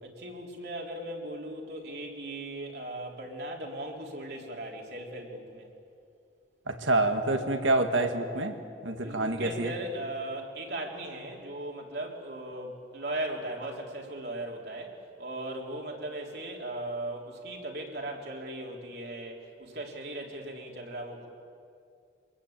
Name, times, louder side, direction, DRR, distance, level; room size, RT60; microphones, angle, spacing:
voice 1, 0.0-5.7 9.0-21.3, right 1 dB, 55° right, 0 dB, 3.5 m, -38 dB
voice 2, 6.7-8.5 8.8-9.7, right 2 dB, 90° right, 6 dB, 2.1 m, -27 dB
25.5 x 21.0 x 8.8 m, 2.5 s
head